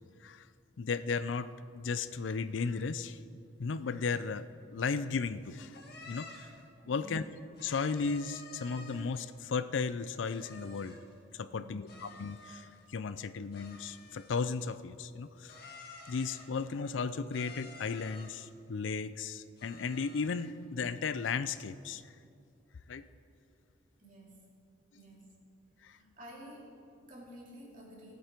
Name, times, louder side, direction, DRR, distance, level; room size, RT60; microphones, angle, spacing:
voice 1, 0.8-3.2 3.6-5.8 6.1-6.5 6.9-7.2 7.6-11.0 11.3-15.6 16.1-22.0 22.9-23.1 25.8-26.0, left 5 dB, 80° left, 14 dB, 0.5 m, -35 dB
sound 1, 5.7-6.6 7.6-9.2 10.3-11.1 11.9-12.9 13.5-14.7 15.5-16.6 17.3-18.5 19.6-20.5, left 3 dB, 55° left, 1.8 m, -51 dB
voice 2, 6.8-7.2 11.5-11.8 24.0-24.5 24.9-25.3 25.8-28.1, right 1 dB, 45° right, -4 dB, 2.9 m, -51 dB
18.5 x 8.5 x 4.5 m, 2.4 s
head